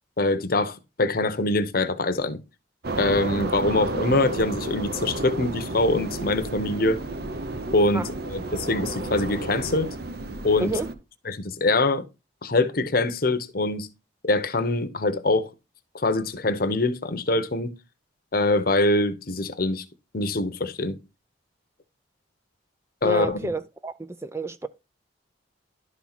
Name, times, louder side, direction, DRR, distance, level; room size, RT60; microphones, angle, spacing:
voice 1, 0.2-2.4 3.0-7.0 7.7-9.9 10.4-10.8 11.2-12.0 12.4-13.9 14.2-15.5 15.9-17.7 18.3-19.8 20.1-21.0 23.0-23.5, left 2 dB, 50° left, 0.9 m, -24 dB
sound 1, 2.8-10.9, right 2 dB, 55° right, 0.8 m, -32 dB
voice 2, 23.0-23.9 24.2-24.7, right 2 dB, 15° right, 0.4 m, -29 dB
11.5 x 4.4 x 4.0 m
head